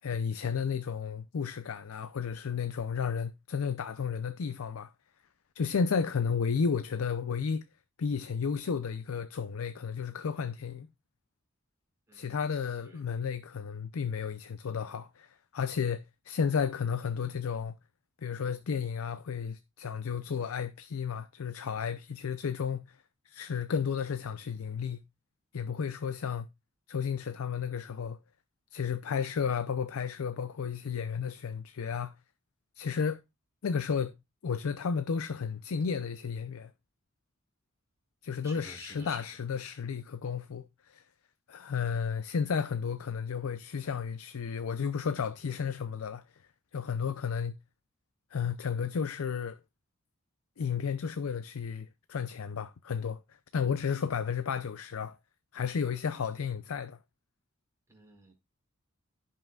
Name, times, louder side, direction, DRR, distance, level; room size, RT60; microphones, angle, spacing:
voice 1, 0.0-4.9 5.6-7.7 8.0-10.9 12.1-17.7 18.2-23.0 23.3-25.0 25.5-26.5 26.9-28.2 28.7-32.1 32.8-33.2 33.6-34.2 34.4-36.7 38.2-41.0 41.5-46.2 46.7-47.5 48.3-49.6 50.6-55.2 55.5-57.0, left 6 dB, 90° left, 0.5 m, -33 dB
voice 2, 12.1-12.5 12.8-13.0 38.4-39.2 57.9-58.4, right 1 dB, 15° right, 4.1 m, -51 dB
15.5 x 5.7 x 2.3 m
head